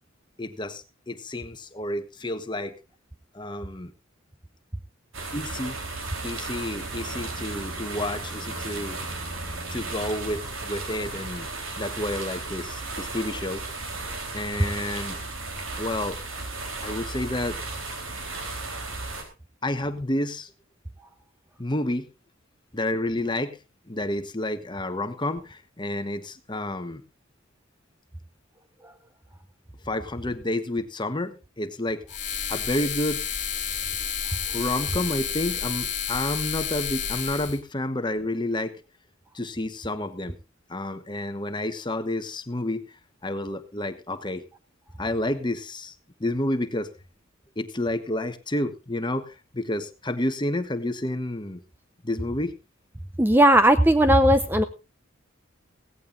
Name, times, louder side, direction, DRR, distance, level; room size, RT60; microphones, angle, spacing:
voice 1, 0.4-2.7 3.3-3.9 5.3-5.8 6.2-9.0 9.7-11.5 11.8-13.6 13.9-15.2 15.8-16.2 16.8-17.6 19.6-20.5 21.6-22.1 22.7-23.6 23.9-27.0 29.8-32.0 32.5-33.3 34.5-38.8 39.3-40.4 40.7-44.4 45.0-45.9 46.2-46.9 47.6-51.6 52.0-52.5, left 1 dB, 20° left, 10 dB, 1.2 m, -30 dB
sound 1, 5.1-19.2, right 3 dB, 75° right, 3.9 m, -34 dB
sound 2, 32.1-37.6, left 8 dB, 40° left, 2.1 m, -30 dB
voice 2, 53.2-54.6, right 1 dB, 10° right, 9 dB, 0.6 m, -17 dB
17.0 x 16.0 x 2.6 m, 0.30 s
head